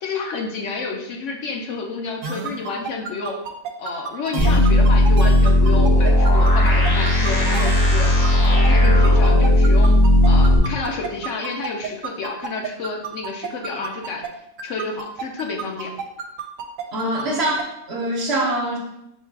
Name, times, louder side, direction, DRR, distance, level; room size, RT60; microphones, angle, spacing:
voice 1, 0.0-3.4 3.8-8.1 8.4-10.0 10.2-14.2 14.6-15.9, left 4 dB, 65° left, 1 dB, 0.9 m, -30 dB
sound 1, 2.2-14.3 14.6-17.6, right 6 dB, 75° right, 0.9 m, -31 dB
sound 2, 4.4-10.6, left 1 dB, 30° left, 0.4 m, -15 dB
voice 2, 16.9-18.8, right 1 dB, 55° right, -2 dB, 1.0 m, -24 dB
4.4 x 2.4 x 4.5 m, 0.84 s
omnidirectional pair, 1.4 m